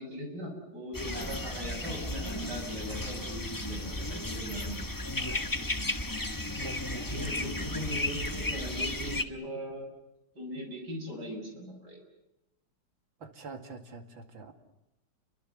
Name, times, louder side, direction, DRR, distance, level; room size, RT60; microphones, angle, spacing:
voice 1, 0.0-4.8 5.3-5.4 7.1-9.9 10.3-12.0, equal, 50° right, 1 dB, 8.0 m, -39 dB
sound 1, 0.9-9.2, left 1 dB, 15° left, 0.9 m, -34 dB
voice 2, 6.6-6.9 13.2-14.5, right 4 dB, 70° right, 5 dB, 3.1 m, -45 dB
29.5 x 24.0 x 7.6 m, 0.90 s
omnidirectional pair, 2.2 m